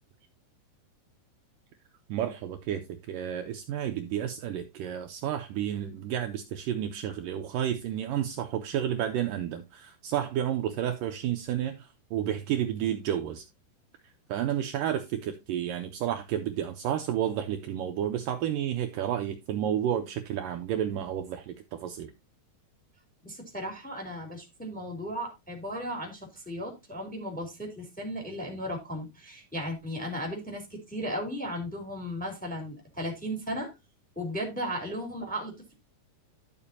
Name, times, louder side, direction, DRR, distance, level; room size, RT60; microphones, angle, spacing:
voice 1, 2.1-13.4 14.3-22.1, right 10 dB, 85° right, 1.9 m, -31 dB
voice 2, 23.2-33.7 34.1-35.7, equal, ahead, 2.3 m, -36 dB
12.0 x 7.0 x 2.8 m
omnidirectional pair, 4.9 m